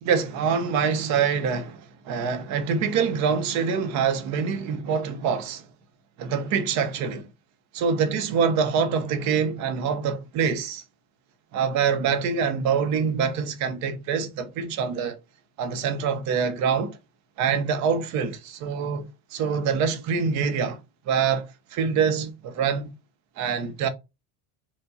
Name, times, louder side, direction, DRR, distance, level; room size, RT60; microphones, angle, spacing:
voice 1, 0.0-5.7 6.2-7.3 7.7-10.8 11.5-15.2 15.6-17.0 17.4-20.8 21.1-22.9 23.4-23.9, right 6 dB, 45° right, 0.7 m, -25 dB
4.5 x 2.2 x 3.9 m
cardioid pair, 160°, 39 cm